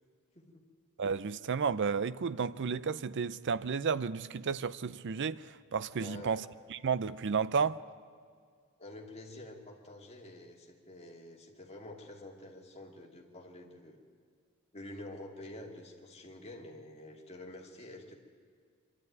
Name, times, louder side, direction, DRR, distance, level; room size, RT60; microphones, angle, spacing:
voice 1, 1.0-5.4 5.7-6.4 6.7-7.8, right 5 dB, 55° right, 0.5 m, -32 dB
voice 2, 6.0-6.4 8.8-14.0 14.7-18.1, left 1 dB, 30° left, 2.5 m, -48 dB
25.0 x 12.5 x 9.3 m
head